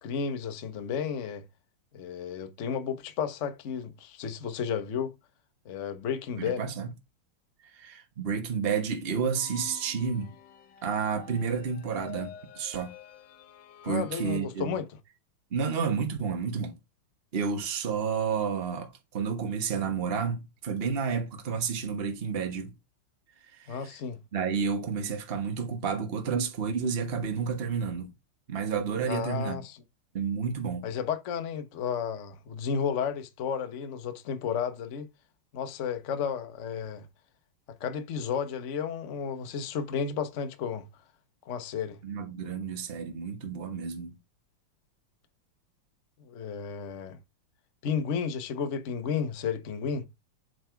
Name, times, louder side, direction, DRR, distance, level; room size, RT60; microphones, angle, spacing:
voice 1, 0.0-1.4 1.9-5.1 5.6-6.6 13.9-14.9 23.7-24.2 29.0-29.8 30.8-35.1 35.5-37.1 37.8-40.9 41.5-42.0 46.2-47.2 47.8-50.0, left 7 dB, 50° left, 0.9 m, -32 dB
voice 2, 6.4-6.9 7.6-10.3 10.8-12.9 13.8-14.8 15.5-16.7 17.3-22.7 23.5-23.8 24.3-28.1 28.5-29.6 30.1-30.8 42.0-44.1, right 6 dB, 35° right, 1.2 m, -30 dB
sound 1, 9.3-14.4, left 9 dB, 65° left, 1.3 m, -48 dB
7.8 x 4.0 x 4.5 m
omnidirectional pair, 2.4 m